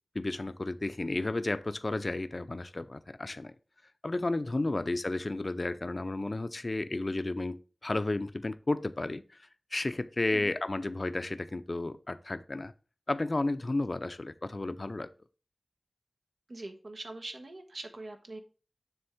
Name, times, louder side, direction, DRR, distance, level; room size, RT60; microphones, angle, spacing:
voice 1, 0.1-3.5 4.0-9.2 9.7-12.7 13.1-15.1, left 2 dB, 50° left, 12 dB, 0.5 m, -32 dB
voice 2, 16.5-18.4, right 2 dB, 80° right, 5 dB, 1.1 m, -43 dB
7.0 x 3.4 x 4.9 m, 0.35 s
wide cardioid pair, 50°, 0 cm